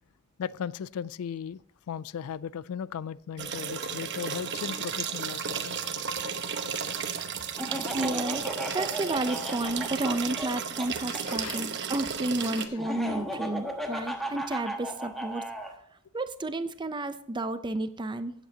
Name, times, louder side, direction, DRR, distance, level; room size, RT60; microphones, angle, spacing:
voice 1, 0.4-5.8 6.2-6.4 7.8-7.9 11.3-11.7 12.4-12.7 14.0-14.1, left 7 dB, 75° left, 0.3 m, -37 dB
sound 1, 3.4-12.7, right 6 dB, 55° right, 0.9 m, -33 dB
Laughter, 7.6-11.2 12.8-15.7, right 1 dB, ahead, 1.2 m, -35 dB
voice 2, 7.7-15.4 16.1-18.3, right 2 dB, 20° right, 0.6 m, -32 dB
16.5 x 8.1 x 2.8 m
head